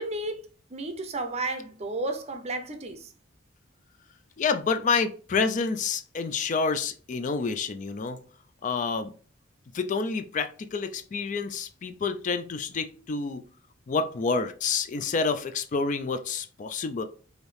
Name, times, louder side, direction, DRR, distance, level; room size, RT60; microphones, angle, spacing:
voice 1, 0.0-3.1, right 2 dB, 30° right, 0.6 m, -33 dB
voice 2, 4.4-8.2 8.6-9.1 9.7-13.4 13.9-17.0, left 4 dB, 40° left, 0.3 m, -28 dB
4.9 x 2.6 x 3.2 m
head